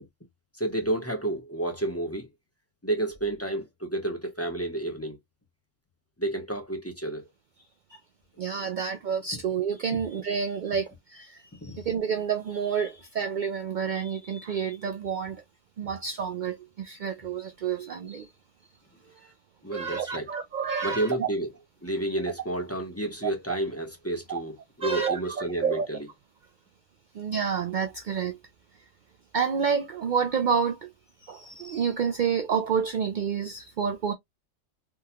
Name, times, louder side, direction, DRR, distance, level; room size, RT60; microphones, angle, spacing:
voice 1, 0.6-2.3 2.8-5.2 6.2-7.3 8.6-8.7 11.6-11.8 19.6-20.3 20.8-21.5 21.8-26.1, right 1 dB, 15° left, 0.8 m, -30 dB
voice 2, 8.4-15.4 15.8-18.3 19.2-19.3 19.7-21.3 23.2-23.3 24.3-24.4 24.8-25.9 27.1-28.4 29.3-30.9 31.2-34.1, right 6 dB, 75° right, 0.4 m, -29 dB
3.7 x 2.3 x 2.8 m
omnidirectional pair, 1.3 m